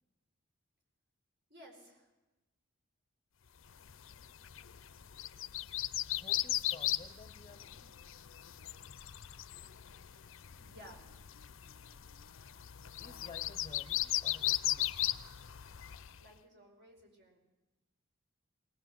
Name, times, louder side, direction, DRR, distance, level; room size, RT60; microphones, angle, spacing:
voice 1, 1.5-2.1 10.6-11.0 16.2-17.4, equal, 55° right, 2 dB, 5.1 m, -56 dB
sound 1, 3.8-16.2, left 13 dB, 65° left, 0.6 m, -38 dB
voice 2, 6.1-7.9 13.0-15.3, left 3 dB, 20° left, 8 dB, 0.8 m, -54 dB
20.0 x 19.0 x 7.7 m, 1.1 s
head